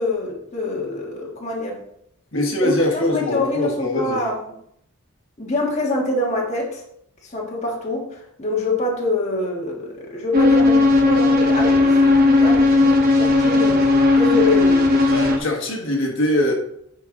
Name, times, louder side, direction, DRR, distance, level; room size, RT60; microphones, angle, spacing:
voice 1, 0.0-1.8 2.6-4.4 5.4-6.8 7.2-13.8 14.1-15.0, left 2 dB, 30° left, -2 dB, 1.4 m, -25 dB
voice 2, 2.3-4.2 15.0-16.5, left 1 dB, 60° left, -1 dB, 1.4 m, -22 dB
sound 1, 10.3-15.4, left 3 dB, 45° right, 1.0 m, -16 dB
9.5 x 4.6 x 3.8 m, 0.74 s
head